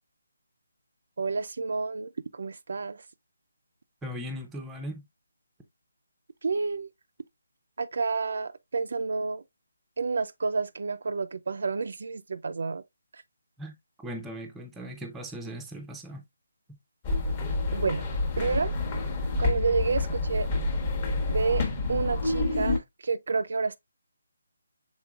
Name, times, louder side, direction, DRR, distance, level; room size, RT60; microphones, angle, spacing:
voice 1, 1.2-3.0 6.4-6.9 7.8-9.4 10.0-12.8 13.1-13.2 17.7-18.1 18.4-18.7 19.4-20.5 21.3-23.8, right 4 dB, 60° right, 0.4 m, -29 dB
voice 2, 4.0-5.0 13.6-13.7 14.0-16.2 16.7-16.8, equal, 5° right, 0.5 m, -38 dB
sound 1, 17.0-22.8, left 2 dB, 20° left, 0.9 m, -28 dB
6.1 x 3.7 x 2.3 m
hypercardioid pair, 170°, 0 cm